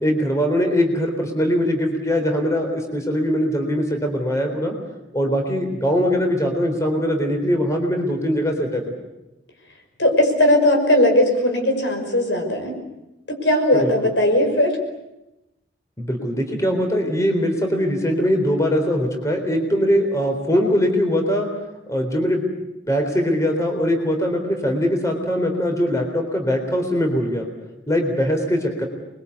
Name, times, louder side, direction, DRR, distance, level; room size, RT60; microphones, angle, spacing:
voice 1, 0.0-4.7 5.1-8.9 13.8-14.1 16.0-21.5 21.9-22.5 22.9-27.5 27.9-28.9, equal, 15° left, 3 dB, 3.8 m, -21 dB
voice 2, 10.0-12.7 13.3-14.7, left 1 dB, 75° left, 4 dB, 5.8 m, -18 dB
28.0 x 22.5 x 8.3 m, 0.95 s
head